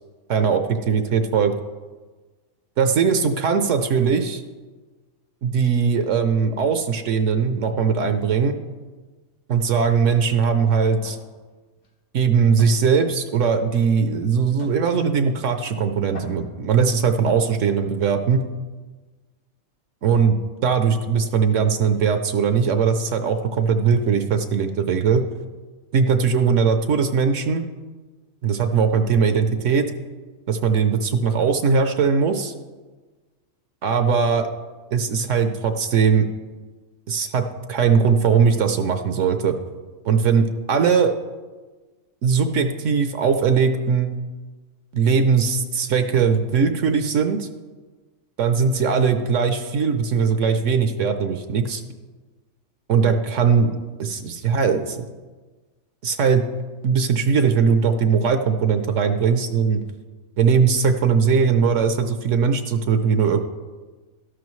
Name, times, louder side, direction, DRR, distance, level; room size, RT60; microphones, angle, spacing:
voice 1, 0.3-1.5 2.8-4.4 5.4-8.5 9.5-11.2 12.1-18.4 20.0-25.2 25.9-27.6 28.4-29.8 30.5-32.5 33.8-34.5 34.9-36.3 37.1-39.6 40.0-41.1 42.2-44.2 44.9-47.5 48.4-51.8 52.9-53.7 54.0-55.1 56.0-56.4 56.8-59.8 60.4-63.4, right 6 dB, 65° right, 8 dB, 1.0 m, -20 dB
sound 1, 11.0-11.3 11.7-11.9 12.6-12.8 13.7-13.8 14.6-14.9 15.7-15.8 16.1-16.6, left 2 dB, 80° left, 2.0 m, -42 dB
12.5 x 11.0 x 3.1 m, 1.3 s
omnidirectional pair, 1.4 m